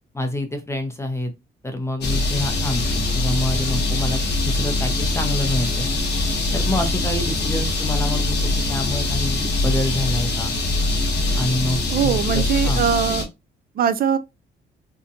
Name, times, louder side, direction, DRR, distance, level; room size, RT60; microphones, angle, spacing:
voice 1, 0.1-1.3 1.6-5.9 6.5-10.5 11.4-12.9, left 1 dB, 15° left, 0.5 m, -27 dB
sound 1, 2.0-13.2, left 2 dB, 55° left, 0.9 m, -23 dB
voice 2, 11.9-13.3 13.8-14.2, right 8 dB, 50° right, 0.4 m, -21 dB
2.6 x 2.1 x 2.6 m
cardioid pair, 90°, 20 cm